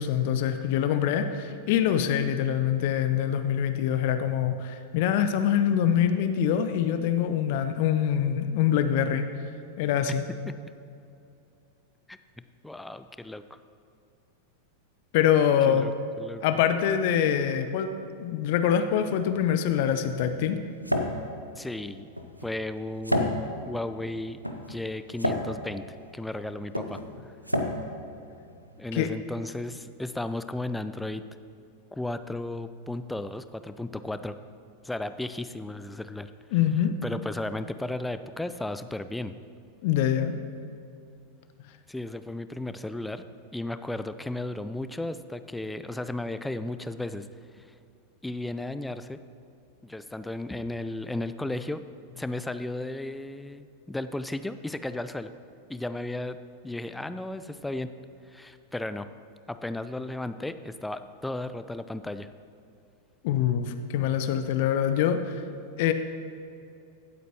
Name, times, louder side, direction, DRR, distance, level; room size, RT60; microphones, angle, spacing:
voice 1, 0.0-9.3 9.8-10.3 15.1-15.9 16.4-17.9 18.2-20.6 28.9-29.1 36.5-36.9 39.8-40.3 63.2-65.4 65.8-65.9, left 9 dB, 50° left, 9 dB, 0.6 m, -24 dB
voice 2, 12.6-13.4 15.6-15.9 16.2-16.6 21.6-22.1 22.4-25.8 26.1-27.3 28.8-31.2 31.9-34.4 34.8-36.3 37.0-39.3 41.9-43.2 43.5-47.3 47.6-47.7 48.2-49.2 49.8-51.8 52.2-55.3 55.7-56.4 56.6-57.9 58.2-59.1 59.5-62.3, left 2 dB, 5° left, 11 dB, 0.4 m, -34 dB
sound 1, 19.2-29.0, left 1 dB, 90° right, 0.7 m, -33 dB
16.0 x 8.2 x 3.0 m, 2.5 s
figure-of-eight pair, 90°, 0 cm